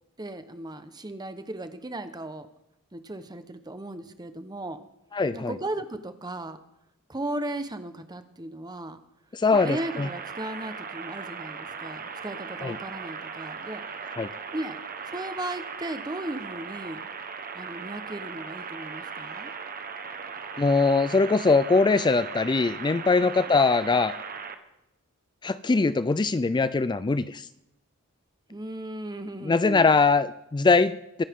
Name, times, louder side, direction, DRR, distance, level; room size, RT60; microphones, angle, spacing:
voice 1, 0.2-2.5 2.9-4.8 5.3-6.6 7.1-9.0 9.5-13.8 14.5-14.8 15.1-17.1 17.5-19.5 23.2-23.5 28.5-29.9, right 1 dB, 20° right, 10 dB, 1.0 m, -36 dB
voice 2, 5.1-5.5 9.3-10.1 12.6-12.8 14.2-14.3 20.6-24.1 25.4-27.5 29.4-31.2, left 4 dB, 20° left, 14 dB, 0.4 m, -22 dB
sound 1, 9.5-24.5, right 5 dB, 40° right, 1.2 m, -38 dB
23.0 x 11.0 x 3.7 m, 0.87 s
head